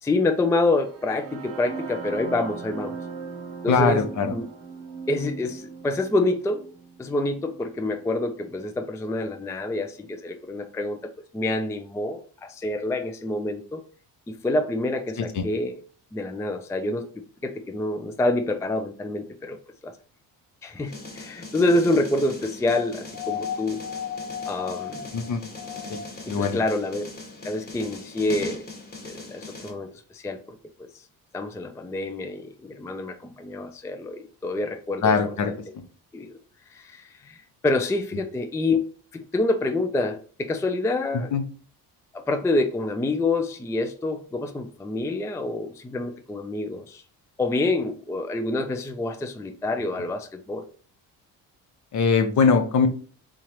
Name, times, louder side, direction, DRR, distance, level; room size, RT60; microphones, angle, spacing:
voice 1, 0.0-3.0 3.6-4.4 5.1-6.6 7.0-13.8 14.3-15.8 16.1-17.1 17.4-19.6 19.8-19.9 20.6-23.8 24.5-25.1 26.3-27.0 27.4-28.7 29.0-30.4 31.3-35.2 36.1-36.3 36.7-38.8 39.1-41.3 42.1-47.0 47.4-50.6, left 2 dB, 10° left, 6 dB, 0.3 m, -27 dB
sound 1, 0.7-8.6, right 5 dB, 60° right, 0.8 m, -39 dB
voice 2, 3.7-4.4 15.2-15.5 25.1-25.4 25.9-26.0 26.3-26.6 35.0-35.5 41.3-41.4 51.9-52.9, left 5 dB, 55° left, 6 dB, 0.8 m, -21 dB
sound 2, 20.9-29.7, left 2 dB, 25° left, 1.1 m, -40 dB
sound 3, 23.1-26.3 27.7-27.8, left 8 dB, 80° left, 1.1 m, -35 dB
3.7 x 2.9 x 3.0 m, 0.41 s
cardioid pair, 90°, 36 cm